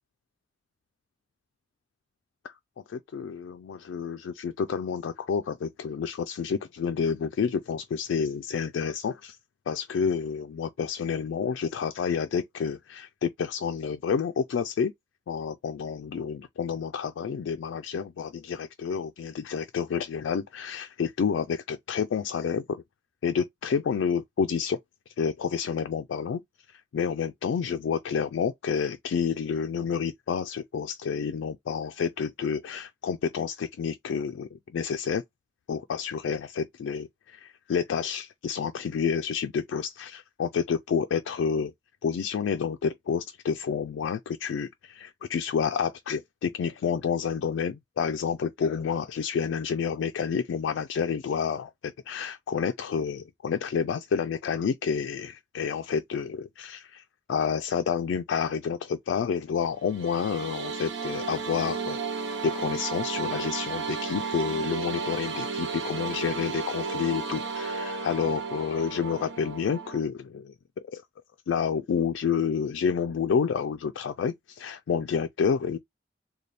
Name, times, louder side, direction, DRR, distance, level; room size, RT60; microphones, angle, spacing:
voice 1, 2.9-9.4 9.7-14.9 15.3-22.8 23.2-24.8 25.2-26.4 26.9-35.2 35.7-41.7 42.0-57.0 57.3-62.0 62.4-70.5 70.9-71.0 71.5-75.8, left 6 dB, 85° left, 0.3 m, -29 dB
sound 1, 59.8-70.0, right 5 dB, 70° right, 0.7 m, -33 dB
3.3 x 2.2 x 4.0 m
head